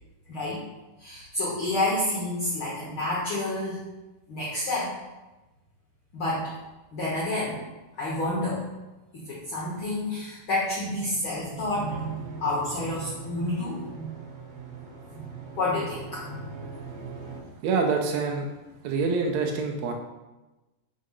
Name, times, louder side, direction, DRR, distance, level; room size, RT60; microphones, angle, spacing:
voice 1, 0.3-0.6 1.0-3.8 4.3-4.9 6.1-6.5 6.9-7.6 8.0-8.7 9.2-14.1 15.1-15.2 15.6-16.7, left 1 dB, 75° left, -6 dB, 1.2 m, -29 dB
sound 1, 11.7-17.4, right 5 dB, 75° right, 1.7 m, -42 dB
voice 2, 17.6-18.5 18.8-19.9, right 4 dB, 90° right, 2 dB, 1.5 m, -26 dB
4.7 x 3.7 x 5.5 m, 1.1 s
omnidirectional pair, 4.0 m